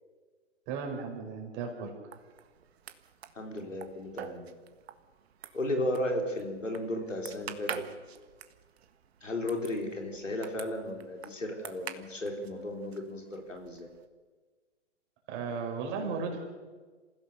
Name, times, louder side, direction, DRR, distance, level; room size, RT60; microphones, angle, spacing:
voice 1, 0.7-1.9 15.3-16.4, right 5 dB, 30° right, 2 dB, 5.3 m, -35 dB
sound 1, 2.1-14.0, right 8 dB, 55° right, 1.7 m, -47 dB
voice 2, 3.3-4.5 5.5-7.9 9.2-13.9, left 1 dB, 90° left, 3 dB, 4.2 m, -34 dB
27.5 x 15.5 x 6.8 m, 1.4 s
figure-of-eight pair, 125°, 37 cm